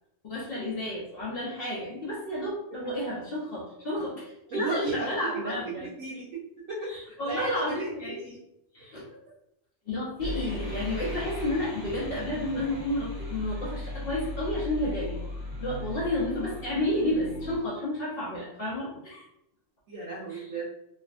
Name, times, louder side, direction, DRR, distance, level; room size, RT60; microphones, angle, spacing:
voice 1, 0.2-5.9 6.9-8.4 8.7-9.1 9.9-15.2 15.6-19.3 20.3-20.4, left 1 dB, 55° left, -6 dB, 0.8 m, -31 dB
voice 2, 4.5-6.4 6.7-8.4 19.9-20.7, right 4 dB, 80° right, -7 dB, 1.1 m, -35 dB
sound 1, 10.2-17.6, left 1 dB, 50° right, 1.7 m, -37 dB
3.3 x 2.0 x 2.4 m, 0.81 s
omnidirectional pair, 1.4 m